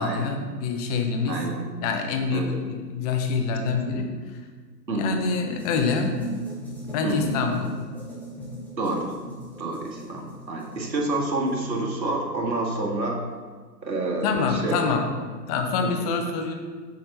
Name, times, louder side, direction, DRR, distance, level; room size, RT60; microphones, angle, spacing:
voice 1, 0.0-1.4 1.8-4.4 4.9-6.2 6.8-7.7 14.2-15.1 15.5-16.5, left 5 dB, 25° left, 4 dB, 0.8 m, -26 dB
voice 2, 1.3-1.7 2.3-2.6 4.9-5.3 7.0-7.4 8.8-9.1 9.6-13.2 13.8-15.0 15.8-16.1, right 2 dB, 85° right, -1 dB, 2.0 m, -28 dB
sound 1, 5.5-11.7, equal, 5° left, 1.5 m, -38 dB
7.6 x 6.6 x 4.2 m, 1.5 s
hypercardioid pair, 130°, 50 cm